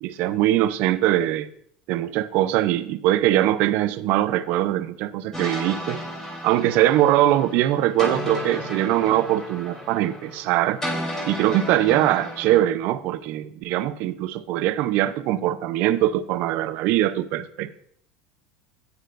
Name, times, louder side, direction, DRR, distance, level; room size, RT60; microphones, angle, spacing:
voice 1, 0.0-1.5 1.9-6.0 6.4-10.8 11.2-17.9, right 13 dB, 60° right, 13 dB, 0.7 m, -22 dB
sound 1, 5.3-12.6, equal, 15° left, 3.4 m, -33 dB
14.5 x 9.7 x 2.6 m, 0.65 s
supercardioid pair, 130°, 4 cm